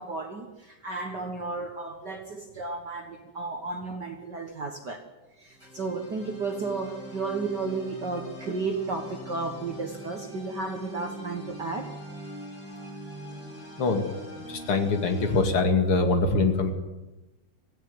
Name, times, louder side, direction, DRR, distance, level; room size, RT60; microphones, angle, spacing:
voice 1, 0.0-5.0 5.4-11.9, right 3 dB, 45° right, 5 dB, 1.5 m, -33 dB
sound 1, 5.5-15.4, equal, 75° left, 8.9 m, -42 dB
voice 2, 13.8-14.1 14.5-16.7, left 3 dB, 45° left, 5 dB, 2.9 m, -23 dB
18.0 x 15.5 x 9.5 m, 1.0 s
omnidirectional pair, 3.4 m